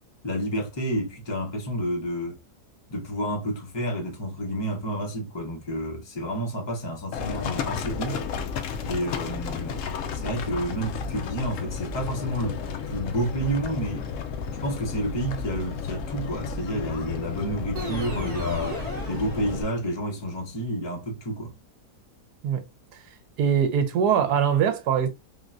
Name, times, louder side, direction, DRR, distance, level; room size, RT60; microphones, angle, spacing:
voice 1, 0.2-2.4 2.9-8.2 8.8-9.8 10.1-14.1 14.6-18.8 19.1-21.5, right 1 dB, 35° left, 0.4 m, -30 dB
Livestock farm animals working animals, 7.1-19.6, left 6 dB, 75° left, 0.7 m, -32 dB
sound 1, 17.7-20.1, left 1 dB, 30° right, 0.9 m, -35 dB
voice 2, 23.4-25.1, right 8 dB, 75° right, 1.2 m, -22 dB
3.6 x 2.2 x 2.5 m
omnidirectional pair, 1.8 m